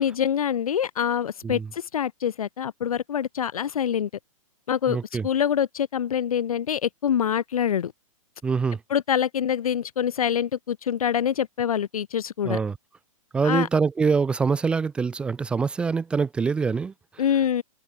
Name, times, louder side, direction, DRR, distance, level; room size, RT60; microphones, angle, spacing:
voice 1, 0.0-4.1 4.7-5.0 5.2-7.9 8.9-12.6 13.4-13.7 17.2-17.6, left 9 dB, 85° left, 2.9 m, -25 dB
voice 2, 4.9-5.3 8.4-8.8 12.4-12.8 13.3-17.2, right 5 dB, 5° right, 0.8 m, -24 dB
hypercardioid pair, 175°, 18 cm